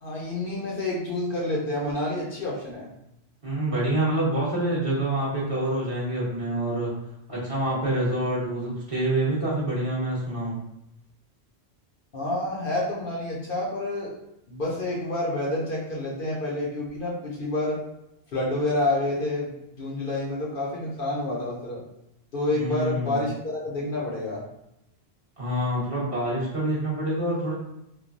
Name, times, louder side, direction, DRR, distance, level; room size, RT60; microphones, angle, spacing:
voice 1, 0.0-2.9 12.1-14.1 14.5-17.8 18.3-21.8 22.3-24.4, left 2 dB, 55° left, -4 dB, 0.8 m, -28 dB
voice 2, 3.4-6.9 7.3-10.6 22.5-23.2 25.4-27.5, right 1 dB, 30° right, -8 dB, 0.9 m, -26 dB
3.1 x 2.1 x 2.5 m, 0.83 s
omnidirectional pair, 1.2 m